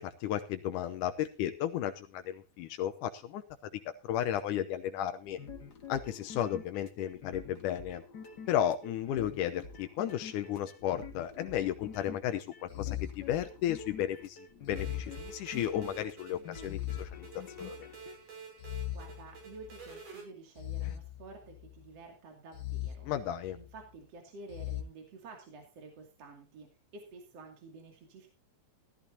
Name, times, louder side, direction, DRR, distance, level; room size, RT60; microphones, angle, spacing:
voice 1, 0.0-3.4 3.7-5.4 5.9-8.0 8.5-14.4 14.7-17.3 17.6-17.8 20.8-20.9 23.0-23.6, left 11 dB, 85° left, 8 dB, 2.3 m, -34 dB
sound 1, 5.2-18.2, left 5 dB, 40° left, 1.7 m, -47 dB
sound 2, 11.6-12.0 12.7-14.0 14.7-15.9 16.6-17.9 18.6-19.9 20.6-21.9 22.5-23.8 24.5-24.8, left 13 dB, 70° left, 2.5 m, -41 dB
sound 3, 14.8-20.2, right 6 dB, 90° right, 6.8 m, -49 dB
voice 2, 18.9-23.1 23.5-28.3, right 3 dB, 50° right, 2 dB, 3.5 m, -51 dB
16.0 x 13.5 x 2.8 m, 0.30 s
omnidirectional pair, 3.6 m